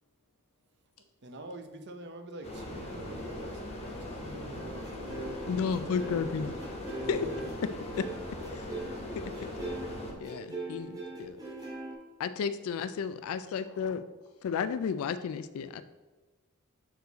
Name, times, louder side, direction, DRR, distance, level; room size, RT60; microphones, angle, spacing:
voice 1, 0.0-1.3 11.9-12.0 13.6-14.5, left 3 dB, 90° left, 3 dB, 1.0 m, -63 dB
voice 2, 1.2-5.3 5.7-6.1 7.0-7.5, right 2 dB, 50° right, 6 dB, 0.7 m, -45 dB
sound 1, 2.4-10.1, left 1 dB, 30° left, 1.0 m, -40 dB
sound 2, 4.5-11.9, right 2 dB, 15° right, 1.5 m, -40 dB
voice 3, 5.5-6.6 7.1-7.3 8.0-8.1 8.5-8.7 9.2-9.3 10.2-11.4 12.2-14.0 14.4-15.8, left 6 dB, 70° left, 12 dB, 0.3 m, -33 dB
6.5 x 4.6 x 4.0 m, 1.2 s
head